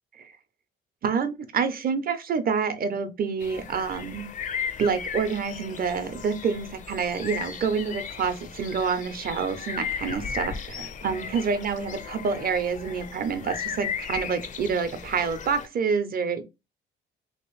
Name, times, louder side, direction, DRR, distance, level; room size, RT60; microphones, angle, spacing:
voice 1, 1.0-4.3 4.8-16.4, right 6 dB, 50° right, 0.7 m, -27 dB
sound 1, 3.4-15.7, left 7 dB, 40° left, 0.4 m, -36 dB
3.1 x 2.9 x 3.1 m
cardioid pair, 90°, 20 cm